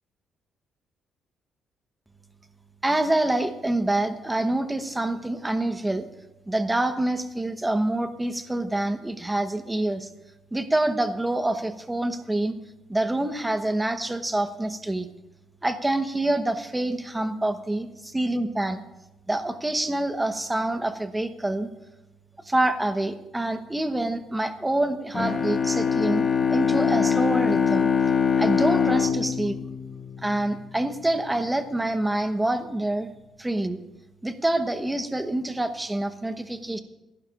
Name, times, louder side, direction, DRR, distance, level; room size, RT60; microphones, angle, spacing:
voice 1, 2.8-6.1 6.5-10.1 10.5-12.6 12.9-15.1 15.6-18.8 19.3-21.7 22.4-27.9 28.4-29.6 30.2-33.1 33.4-33.8 34.2-36.8, right 1 dB, 15° right, 8 dB, 1.1 m, -26 dB
Bowed string instrument, 25.1-30.7, left 6 dB, 40° left, 0.9 m, -23 dB
26.0 x 11.5 x 2.5 m, 0.96 s
cardioid pair, 90°, 0 cm